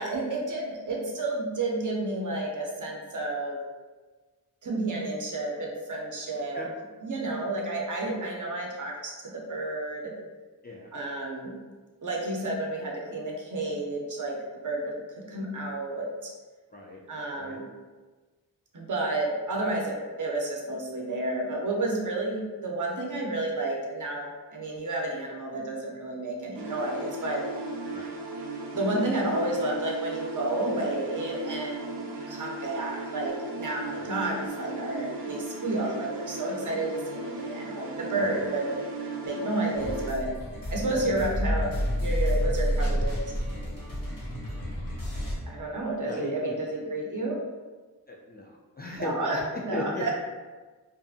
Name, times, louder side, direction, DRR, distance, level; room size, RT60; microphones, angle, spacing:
voice 1, 0.0-3.6 4.6-6.6 7.0-10.1 10.9-11.5 12.0-14.4 14.6-16.3 17.1-17.7 18.7-27.4 28.7-38.8 39.2-40.3 40.7-41.7 42.0-43.2 45.4-47.4 49.0-50.1, right 2 dB, 50° right, -2 dB, 0.7 m, -31 dB
voice 2, 6.3-6.7 10.6-10.9 16.7-17.0 17.4-17.6 27.9-28.2 34.0-34.1 38.1-38.4 46.0-46.6 48.1-50.1, left 1 dB, 25° left, -3 dB, 0.3 m, -37 dB
sound 1, 26.5-40.1, right 2 dB, 90° right, 0.5 m, -36 dB
sound 2, 39.7-45.3, equal, 55° left, 1.0 m, -29 dB
2.6 x 2.5 x 2.4 m, 1.3 s
cardioid pair, 55°, 40 cm